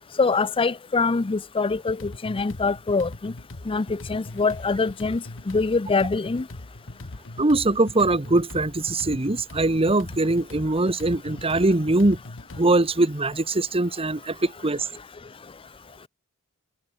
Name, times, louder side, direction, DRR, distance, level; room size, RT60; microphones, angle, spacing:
voice 1, 0.2-3.3 3.7-6.4, left 4 dB, 25° left, 0.5 m, -24 dB
sound 1, 1.7-12.6, left 2 dB, 60° left, 1.4 m, -40 dB
voice 2, 7.4-12.2 12.6-14.9, right 2 dB, 25° right, 1.3 m, -22 dB
head